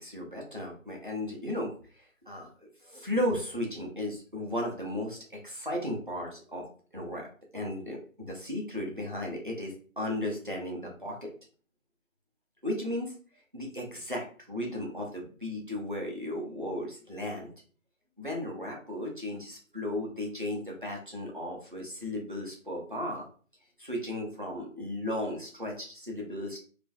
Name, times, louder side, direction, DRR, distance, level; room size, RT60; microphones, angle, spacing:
voice 1, 0.0-2.5 2.8-6.6 6.9-7.3 7.5-11.3 12.6-13.1 13.5-17.5 18.2-23.3 23.8-26.6, left 1 dB, 40° right, -1 dB, 0.5 m, -35 dB
2.5 x 2.3 x 2.2 m, 0.41 s
figure-of-eight pair, 165°, 41 cm